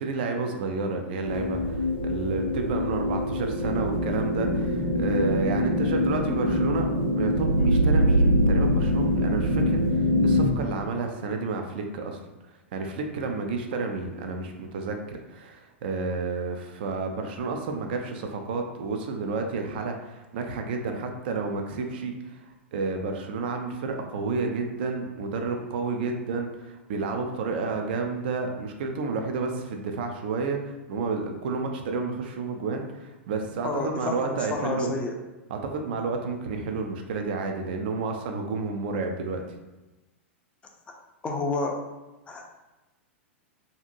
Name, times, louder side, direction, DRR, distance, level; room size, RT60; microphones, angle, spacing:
voice 1, 0.0-6.9 7.1-12.2 12.7-34.9 35.5-39.6, right 4 dB, 50° right, 4 dB, 0.4 m, -31 dB
sound 1, 1.2-10.5, equal, 80° right, 1.1 m, -24 dB
voice 2, 33.6-35.2 41.2-41.8 42.3-42.5, left 3 dB, 15° left, 0 dB, 0.4 m, -30 dB
2.7 x 2.5 x 2.5 m, 1.1 s
figure-of-eight pair, 95°, 7 cm